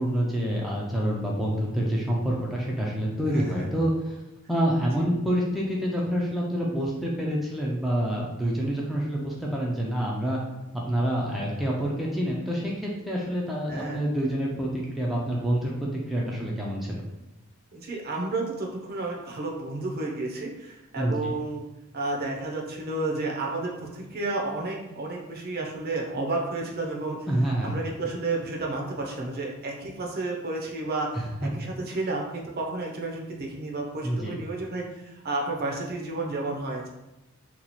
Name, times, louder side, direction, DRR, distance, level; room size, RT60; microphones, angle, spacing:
voice 1, 0.0-4.2 4.5-10.4 10.9-17.0 21.0-21.3 27.3-27.7 31.1-31.2 31.9-32.0 34.0-34.4, equal, ahead, -4 dB, 0.4 m, -27 dB
voice 2, 3.3-3.7 13.7-14.0 17.7-21.6 21.9-27.2 27.6-36.9, right 2 dB, 45° right, 0 dB, 0.6 m, -31 dB
2.9 x 2.3 x 4.0 m, 0.97 s
head